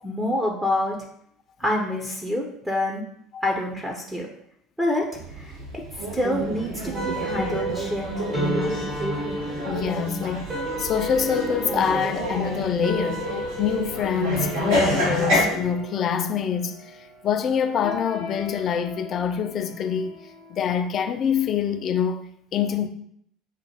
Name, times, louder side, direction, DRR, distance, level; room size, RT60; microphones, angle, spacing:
voice 1, 0.0-1.0 1.6-3.0 3.4-4.3 4.8-5.0 5.3-5.6 5.9-8.7, left 1 dB, 10° right, 0.8 m, -27 dB
sound 1, 5.2-15.4, equal, 70° right, 1.6 m, -29 dB
sound 2, 6.9-21.5, equal, 30° right, 1.3 m, -34 dB
voice 2, 9.7-10.5 10.8-20.2 20.5-22.2 22.5-22.9, left 7 dB, 40° left, 0.4 m, -25 dB
6.6 x 2.5 x 2.8 m
figure-of-eight pair, 65°, 0 cm